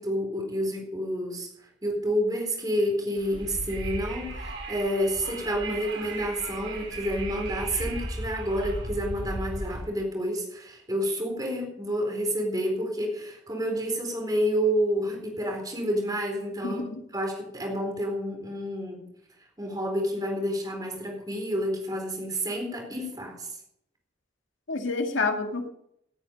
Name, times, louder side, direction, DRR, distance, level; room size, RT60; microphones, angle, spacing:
voice 1, 0.0-1.5 1.8-16.8 17.1-19.0 19.6-23.5, equal, 20° right, 2 dB, 4.1 m, -29 dB
Wind, 3.2-9.8, right 1 dB, 85° right, 6.1 m, -36 dB
voice 2, 16.6-17.0 24.7-25.7, left 3 dB, 90° left, 5 dB, 2.0 m, -28 dB
18.5 x 9.7 x 5.3 m, 0.74 s
head